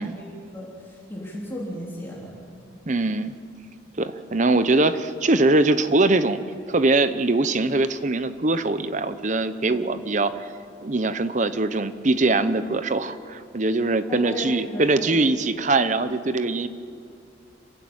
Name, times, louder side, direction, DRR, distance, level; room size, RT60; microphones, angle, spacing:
voice 1, 0.0-2.4 9.7-9.8 14.1-15.1, equal, 10° left, -6 dB, 3.4 m, -35 dB
voice 2, 2.9-3.3 4.0-6.4 6.7-10.5 10.8-16.7, right 2 dB, 40° right, 12 dB, 0.8 m, -22 dB
26.5 x 15.5 x 8.9 m, 2.4 s
head